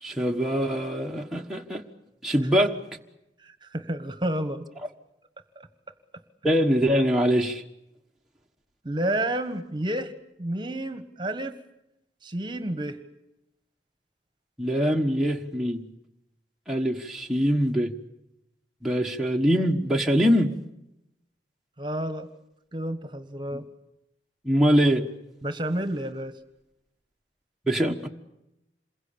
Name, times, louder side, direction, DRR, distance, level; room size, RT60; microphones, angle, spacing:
voice 1, 0.0-1.8 2.2-2.7 6.4-7.6 14.6-15.8 16.7-17.9 18.8-20.5 23.5-23.6 24.4-25.0 27.7-28.1, equal, ahead, -1 dB, 1.4 m, -23 dB
voice 2, 3.4-4.7 5.5-5.7 8.8-10.1 10.4-11.6 12.2-13.0 21.8-22.3 22.7-23.7 25.4-26.3, right 1 dB, 25° right, 11 dB, 1.4 m, -30 dB
27.5 x 22.0 x 8.7 m, 0.87 s
head